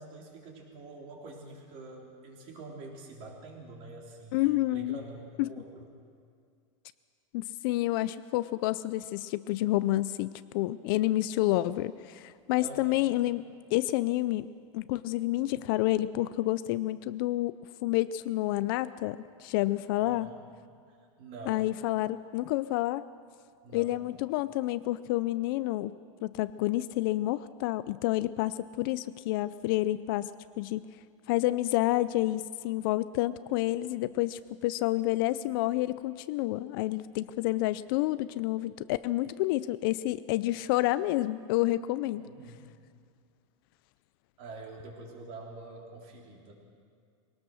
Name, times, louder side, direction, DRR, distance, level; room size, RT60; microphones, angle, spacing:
voice 1, 0.0-5.9 12.6-13.0 20.0-20.4 20.9-21.7 23.6-24.0 42.2-42.7 44.4-46.5, right 3 dB, 40° right, 0 dB, 3.7 m, -46 dB
voice 2, 4.3-5.0 5.4-5.5 7.3-13.4 13.7-14.5 14.7-17.6 17.8-20.3 21.5-23.0 23.7-26.0 26.2-30.3 30.6-30.9 31.3-42.2, left 16 dB, 45° left, 15 dB, 0.4 m, -29 dB
22.0 x 18.5 x 6.4 m, 2.2 s
supercardioid pair, 160°, 16 cm